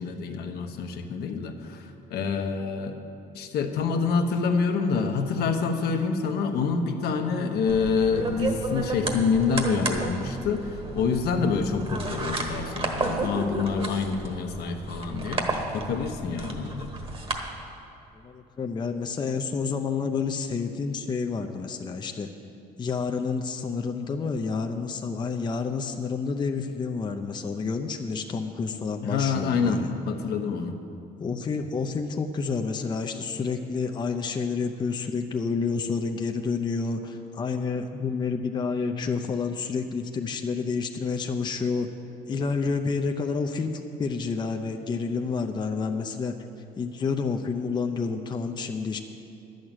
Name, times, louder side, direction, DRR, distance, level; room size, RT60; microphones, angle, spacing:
voice 1, 0.0-3.0 3.3-16.9 29.0-30.7, left 5 dB, 70° left, 5 dB, 1.0 m, -27 dB
sound 1, 7.7-17.4, right 3 dB, 35° right, 1.4 m, -32 dB
voice 2, 18.1-22.3 22.8-29.9 31.2-41.9 42.3-46.3 46.8-49.0, left 5 dB, 25° left, 5 dB, 0.6 m, -29 dB
11.0 x 6.4 x 8.9 m, 2.7 s
cardioid pair, 110°, 17 cm